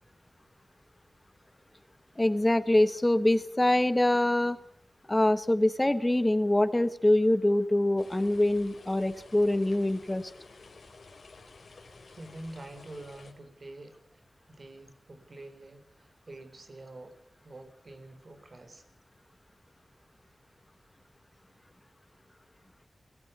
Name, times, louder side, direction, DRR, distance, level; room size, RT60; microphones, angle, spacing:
voice 1, 2.2-4.6 5.1-10.3, left 1 dB, 20° left, 13 dB, 1.1 m, -24 dB
sound 1, 8.0-13.3, left 3 dB, 70° left, 3.7 m, -52 dB
voice 2, 12.1-18.9, right 2 dB, 55° right, 9 dB, 4.1 m, -47 dB
21.5 x 17.0 x 7.0 m, 0.67 s
cardioid pair, 55°, 0 cm